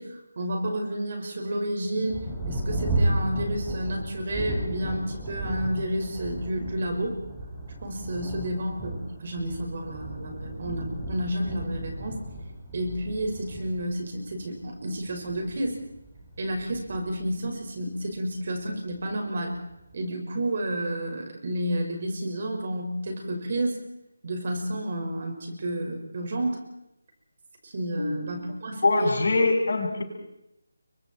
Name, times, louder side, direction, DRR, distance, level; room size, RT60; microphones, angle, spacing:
voice 1, 0.0-7.2 7.8-12.2 12.7-15.8 16.4-19.5 19.9-23.8 24.2-26.6 27.6-29.1, right 1 dB, 40° right, 3 dB, 5.6 m, -31 dB
Thunder, 2.1-18.1 18.9-19.0 19.6-20.0, right 1 dB, 5° right, 3.8 m, -34 dB
voice 2, 28.0-28.3 28.8-30.0, left 2 dB, 60° left, 2 dB, 7.1 m, -23 dB
29.5 x 24.0 x 4.6 m, 0.84 s
figure-of-eight pair, 175°, 0 cm